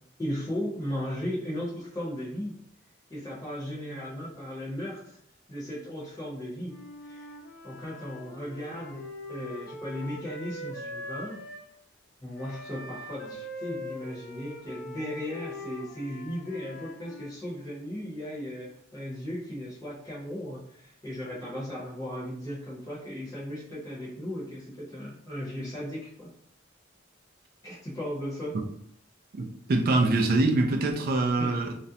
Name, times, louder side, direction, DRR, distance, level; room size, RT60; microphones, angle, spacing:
voice 1, 0.2-2.6 3.1-5.2 5.5-6.8 7.0-7.3 7.6-9.0 9.3-11.4 12.2-26.3 27.6-28.6 31.4-31.6, equal, 15° left, 0.7 m, -36 dB
Wind instrument woodwind instrument, 6.6-11.7 12.3-17.3, left 1 dB, 60° left, 0.7 m, -42 dB
voice 2, 29.3-31.7, right 2 dB, 50° right, 0.4 m, -24 dB
2.4 x 2.0 x 2.7 m
head